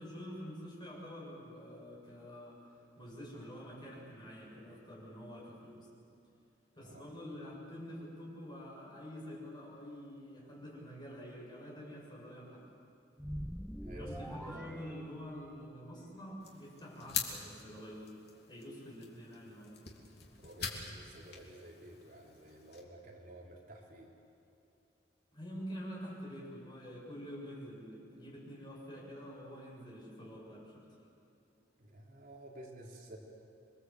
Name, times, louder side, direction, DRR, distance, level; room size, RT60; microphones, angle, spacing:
voice 1, 0.0-2.6 3.0-5.9 6.7-12.6 13.9-18.1 18.5-19.8 25.3-30.8, equal, 25° left, -3 dB, 7.4 m, -47 dB
sound 1, 13.2-15.8, equal, ahead, 0.5 m, -44 dB
voice 2, 14.4-14.7 20.4-24.1 31.8-33.2, right 1 dB, 55° right, -2 dB, 3.9 m, -52 dB
sound 2, 16.4-22.8, left 6 dB, 65° left, 3.3 m, -44 dB
28.0 x 22.5 x 8.0 m, 2.7 s
head